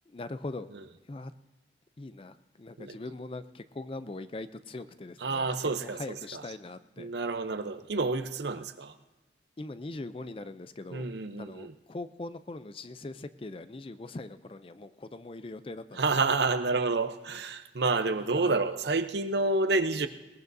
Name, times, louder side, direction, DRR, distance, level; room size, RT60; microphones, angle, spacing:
voice 1, 0.1-0.7 1.1-1.3 2.0-5.5 5.8-7.1 9.6-11.1 11.4-16.0 18.4-18.5, left 2 dB, 30° left, 0.4 m, -41 dB
voice 2, 5.2-6.6 7.0-8.9 10.9-11.7 15.9-20.1, right 3 dB, 75° right, 0.7 m, -29 dB
21.0 x 19.0 x 2.7 m
head